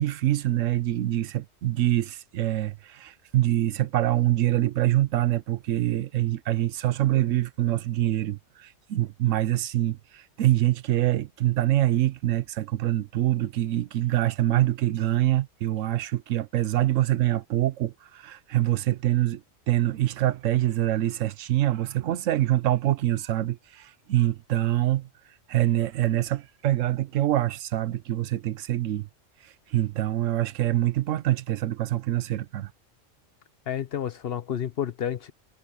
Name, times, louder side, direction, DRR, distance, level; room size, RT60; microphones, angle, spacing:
voice 1, 0.0-25.1 25.5-29.1 29.7-32.7, right 14 dB, 85° right, 1.1 m, -25 dB
voice 2, 33.7-35.3, left 9 dB, 55° left, 0.9 m, -30 dB
omnidirectional pair, 1.3 m